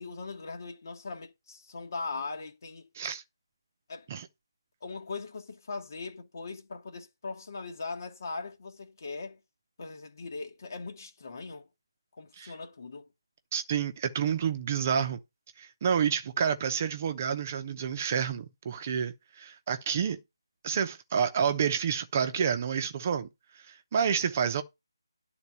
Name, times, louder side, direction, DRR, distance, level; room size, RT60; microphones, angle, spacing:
voice 1, 0.0-2.9 3.9-4.1 4.8-9.4 9.8-11.7 12.2-13.1, left 4 dB, 45° left, 1.4 m, -40 dB
voice 2, 13.5-15.2 15.6-20.2 20.6-23.3 23.7-24.6, right 7 dB, 30° right, 0.8 m, -29 dB
10.5 x 3.9 x 7.2 m
figure-of-eight pair, 150°, 2 cm